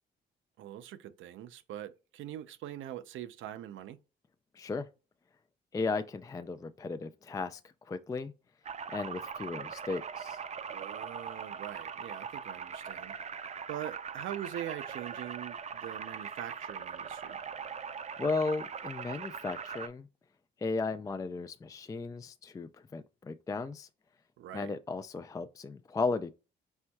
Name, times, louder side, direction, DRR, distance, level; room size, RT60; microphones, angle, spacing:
voice 1, 0.6-4.0 10.7-13.1 13.7-17.4 24.4-24.7, right 12 dB, 80° right, 0.6 m, -43 dB
voice 2, 4.5-4.9 5.7-8.3 8.9-10.4 18.2-20.1 20.6-23.9 24.5-26.3, left 3 dB, 15° left, 0.3 m, -35 dB
sound 1, 8.7-19.9, right 6 dB, 35° right, 0.5 m, -41 dB
4.5 x 4.3 x 2.3 m
cardioid pair, 90°, 20 cm